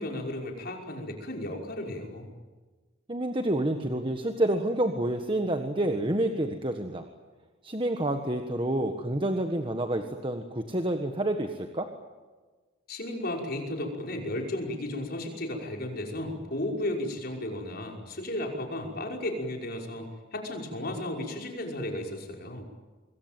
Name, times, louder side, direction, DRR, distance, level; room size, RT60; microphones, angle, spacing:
voice 1, 0.0-2.3 12.9-22.6, left 1 dB, 50° left, 1 dB, 5.6 m, -34 dB
voice 2, 3.1-7.1 7.6-11.9, right 1 dB, 25° right, 6 dB, 1.5 m, -28 dB
26.5 x 22.0 x 9.2 m, 1.3 s
head